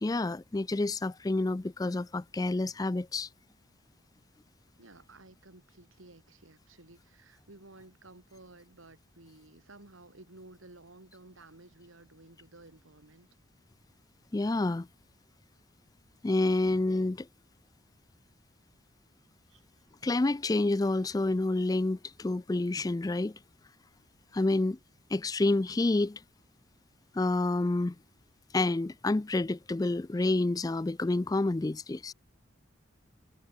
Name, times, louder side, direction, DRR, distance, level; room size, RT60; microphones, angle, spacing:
voice 1, 0.0-3.3 14.3-14.9 16.2-17.3 20.0-23.3 24.3-24.8 25.1-26.2 27.1-28.0 28.5-32.1, left 2 dB, 20° left, 0.3 m, -28 dB
voice 2, 4.8-13.3 19.5-19.6 24.3-24.6, right 2 dB, 85° right, 3.1 m, -54 dB
head